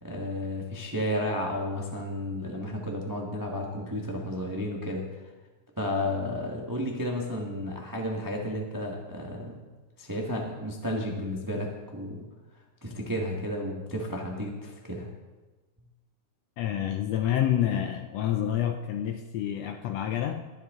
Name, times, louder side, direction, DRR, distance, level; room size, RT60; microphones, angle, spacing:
voice 1, 0.0-5.1 5.8-9.6 10.0-12.2 12.8-15.1, left 1 dB, 25° right, -1 dB, 0.4 m, -32 dB
voice 2, 16.6-20.5, left 11 dB, 75° left, 6 dB, 1.5 m, -28 dB
21.0 x 8.1 x 3.7 m, 1.2 s
omnidirectional pair, 3.4 m